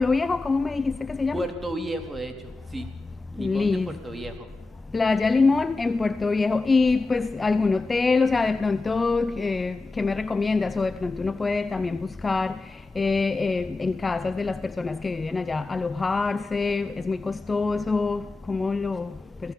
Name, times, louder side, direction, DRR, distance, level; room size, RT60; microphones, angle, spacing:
voice 1, 0.0-1.5 3.4-3.9 4.9-12.6 13.0-19.1, left 4 dB, 20° left, 0.6 m, -24 dB
voice 2, 1.3-2.9 3.3-4.5, right 1 dB, 15° right, 3.4 m, -33 dB
27.0 x 18.0 x 5.6 m
hypercardioid pair, 85°, 0 cm